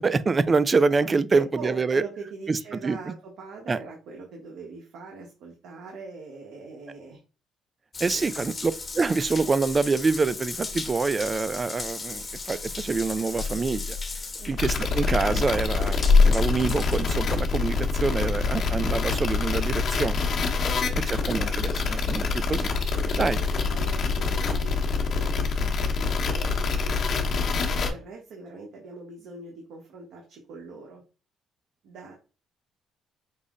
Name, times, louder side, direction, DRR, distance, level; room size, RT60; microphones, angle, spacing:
voice 1, 0.0-2.0 2.5-3.1 3.7-3.8 8.0-14.0 14.5-20.2 21.1-22.7 23.2-23.4, right 4 dB, 30° right, 0.3 m, -26 dB
voice 2, 1.0-7.2 8.1-8.4 14.4-14.8 20.5-20.9 23.1-31.0 31.8-32.1, right 3 dB, 70° right, 1.0 m, -42 dB
Water tap faucet / Bathtub (filling or washing) / Drip, 7.9-17.8, left 4 dB, 30° left, 1.0 m, -28 dB
sound 1, 14.6-27.9, left 4 dB, 55° left, 0.9 m, -26 dB
5.3 x 2.1 x 3.7 m
cardioid pair, 100°, 0 cm